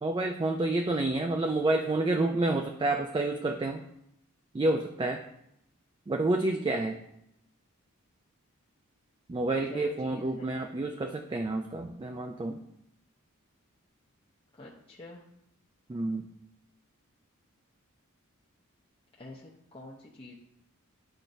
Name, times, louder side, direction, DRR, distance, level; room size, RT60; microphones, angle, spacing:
voice 1, 0.0-3.8 4.5-5.2 6.1-7.0 9.3-12.6 15.9-16.3, right 2 dB, 20° right, 4 dB, 0.3 m, -29 dB
voice 2, 9.7-10.6 14.6-15.2 19.2-20.4, left 1 dB, 25° left, -4 dB, 0.7 m, -46 dB
10.5 x 4.3 x 2.6 m, 0.79 s
head